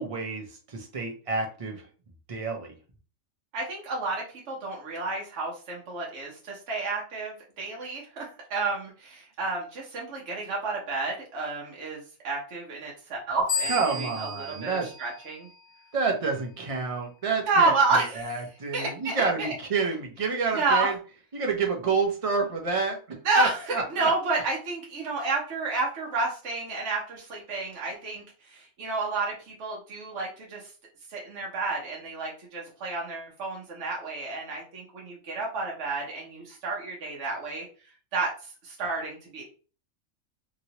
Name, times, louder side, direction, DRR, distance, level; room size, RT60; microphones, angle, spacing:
voice 1, 0.0-1.9 2.3-2.8 13.7-14.9 15.9-20.9 21.3-24.1, right 4 dB, 35° right, 2 dB, 0.6 m, -29 dB
voice 2, 3.5-14.5 14.8-15.5 17.5-18.4 18.7-19.5 20.5-20.9 23.2-30.7 31.1-37.7 38.1-38.3 38.6-39.4, right 3 dB, 65° right, -3 dB, 1.1 m, -30 dB
sound 1, 13.5-16.0, left 4 dB, 80° left, 1.4 m, -34 dB
2.9 x 2.8 x 2.8 m, 0.38 s
omnidirectional pair, 1.3 m